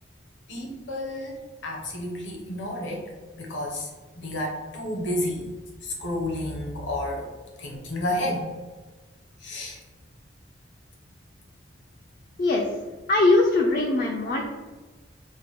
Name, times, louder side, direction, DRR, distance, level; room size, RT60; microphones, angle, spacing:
voice 1, 0.5-1.4 1.6-3.0 3.4-3.9 4.2-5.4 5.8-7.3 7.6-8.5 9.4-9.8, left 1 dB, 80° left, 0 dB, 0.8 m, -31 dB
voice 2, 13.1-14.4, left 2 dB, 45° left, 0 dB, 0.3 m, -21 dB
4.7 x 2.2 x 2.9 m, 1.3 s
head